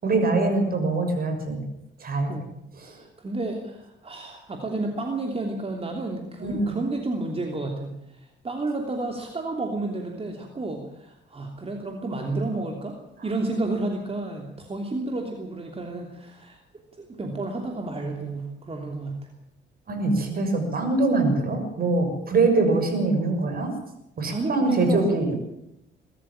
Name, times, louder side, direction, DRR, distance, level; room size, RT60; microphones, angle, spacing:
voice 1, 0.0-1.7 2.0-2.3 2.8-3.0 6.4-6.7 19.9-23.7 24.2-25.3, right 3 dB, 50° right, 6 dB, 6.6 m, -23 dB
voice 2, 2.3-13.0 13.2-16.6 16.9-19.2 24.3-25.3, right 2 dB, 30° right, 2 dB, 3.1 m, -31 dB
22.5 x 13.5 x 8.9 m, 0.82 s
cardioid pair, 90°, 20 cm